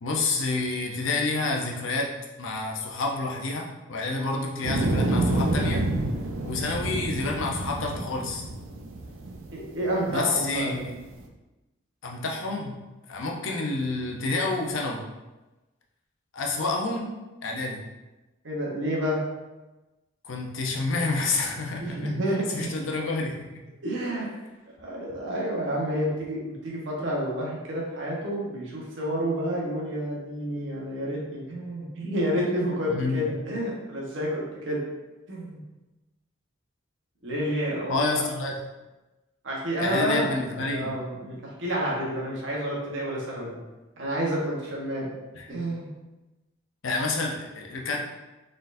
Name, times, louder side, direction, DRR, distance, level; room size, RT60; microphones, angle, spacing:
voice 1, 0.0-2.1 2.4-5.8 6.4-8.4 10.1-10.9 12.0-12.8 13.1-15.0 16.3-17.1 17.4-17.8 20.2-22.1 22.5-23.5 32.9-33.2 37.9-38.5 39.8-40.9 45.3-45.5 46.8-48.0, left 3 dB, 75° left, 0 dB, 0.7 m, -28 dB
sound 1, 4.6-11.2, right 2 dB, 85° right, 0.5 m, -28 dB
voice 2, 9.5-10.8 18.4-19.2 21.8-22.7 23.8-24.3 24.8-34.8 35.3-35.6 37.2-38.2 39.4-40.3 40.6-43.6 44.0-45.1 45.5-45.9, equal, 65° right, -4 dB, 1.2 m, -29 dB
4.2 x 3.8 x 2.6 m, 1.1 s
head